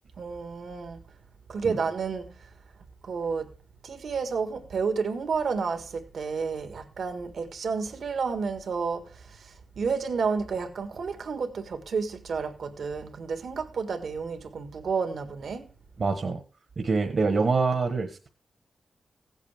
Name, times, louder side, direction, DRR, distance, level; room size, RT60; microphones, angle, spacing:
voice 1, 0.2-1.0 1.5-2.5 3.0-3.5 3.8-15.7, right 5 dB, 80° right, 1.7 m, -31 dB
voice 2, 16.0-16.4 16.8-18.3, right 4 dB, 55° right, 1.3 m, -25 dB
16.0 x 8.2 x 3.5 m
wide cardioid pair, 100°, 0 cm